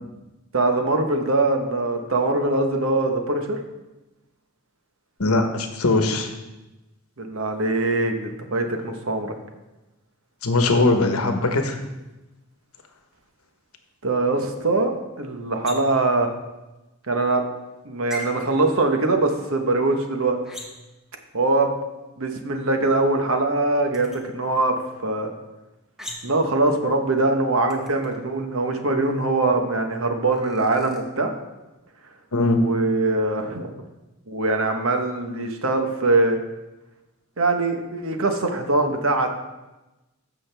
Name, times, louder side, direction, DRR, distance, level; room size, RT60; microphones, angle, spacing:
voice 1, 0.5-3.6 7.2-9.3 14.0-16.3 17.1-17.4 17.8-20.4 21.3-21.7 22.2-24.8 25.0-25.3 26.2-31.3 32.5-33.7 34.3-36.4 37.4-39.4, right 2 dB, 60° right, 5 dB, 1.1 m, -22 dB
voice 2, 5.2-6.3 10.4-11.8 32.3-32.6, left 2 dB, 75° left, 5 dB, 1.1 m, -20 dB
sound 1, 15.6-16.0 18.1-18.3 20.4-20.9 23.9-24.2 26.0-26.4 27.7-28.2 30.3-31.0, equal, ahead, 1.1 m, -38 dB
15.0 x 6.3 x 3.4 m, 1.0 s
head